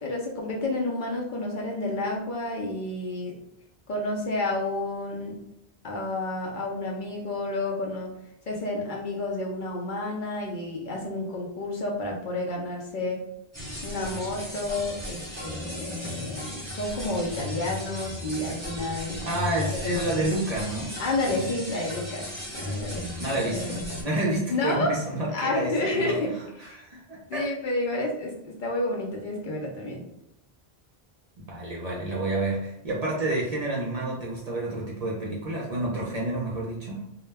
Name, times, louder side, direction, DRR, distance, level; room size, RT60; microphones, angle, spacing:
voice 1, 0.0-3.4 3.9-5.4 5.8-8.1 8.5-13.2 13.8-19.2 19.8-20.4 21.0-22.3 22.5-23.1 23.5-23.8 24.5-24.9 25.3-26.8 27.3-30.0, left 2 dB, 60° left, -2 dB, 0.6 m, -30 dB
sound 1, 13.5-24.0, left 1 dB, 15° right, 0.9 m, -36 dB
voice 2, 19.2-20.9 23.2-26.2 26.8-27.5 31.5-37.0, right 1 dB, 50° right, -3 dB, 0.5 m, -29 dB
2.2 x 2.1 x 3.3 m, 0.81 s
omnidirectional pair, 1.0 m